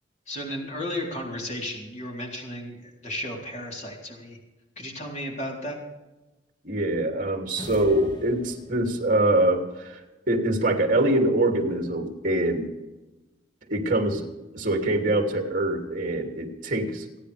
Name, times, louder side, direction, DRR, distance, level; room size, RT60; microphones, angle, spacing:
voice 1, 0.3-4.4 4.8-5.8, left 1 dB, 40° left, -1 dB, 3.7 m, -34 dB
voice 2, 6.6-10.0 10.3-12.7 13.7-14.3 14.5-17.1, right 1 dB, 50° right, 2 dB, 2.9 m, -24 dB
sound 1, 7.6-9.1, left 1 dB, 25° left, 1.9 m, -40 dB
30.0 x 10.0 x 3.5 m, 1.1 s
head